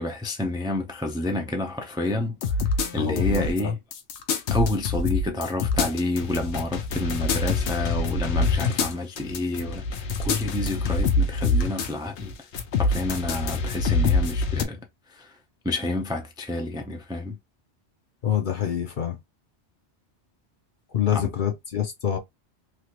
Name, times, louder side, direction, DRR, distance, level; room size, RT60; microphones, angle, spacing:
voice 1, 0.0-3.8 4.5-12.3 12.8-14.8 15.1-15.3 15.6-17.4 21.1-21.3, left 2 dB, 5° right, 0.3 m, -29 dB
sound 1, 2.4-3.6 3.9-11.9 12.2-14.7, left 3 dB, 80° left, 1.0 m, -25 dB
voice 2, 3.0-3.7 18.2-19.2 20.9-22.2, left 9 dB, 55° left, 0.7 m, -26 dB
3.2 x 2.5 x 2.9 m
omnidirectional pair, 1.2 m